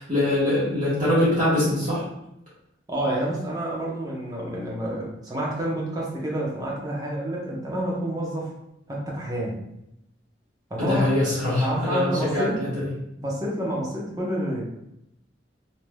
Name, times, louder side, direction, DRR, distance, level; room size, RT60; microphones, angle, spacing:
voice 1, 0.0-2.0 10.8-12.9, left 1 dB, 45° right, -10 dB, 1.2 m, -23 dB
voice 2, 2.9-8.5 8.9-9.6 10.7-11.1 11.6-12.6 13.2-14.6, right 1 dB, 20° right, -4 dB, 0.7 m, -28 dB
3.2 x 2.7 x 2.2 m, 0.82 s
head